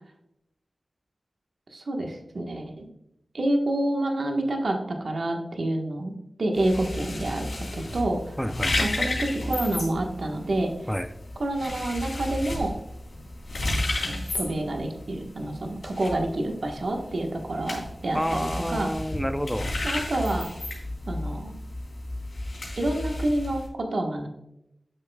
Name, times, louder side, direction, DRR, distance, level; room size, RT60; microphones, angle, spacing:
voice 1, 1.7-2.9 3.3-8.4 8.8-10.7 11.4-12.8 14.0-18.9 19.8-20.5 21.1-21.5 22.8-24.3, right 1 dB, 75° right, 2 dB, 1.3 m, -28 dB
sound 1, 6.5-23.7, left 1 dB, 80° left, 2.9 m, -33 dB
voice 2, 8.4-9.1 10.9-11.1 18.1-19.7, equal, ahead, 8 dB, 0.6 m, -29 dB
11.0 x 6.8 x 2.3 m, 0.81 s
wide cardioid pair, 55°, 0 cm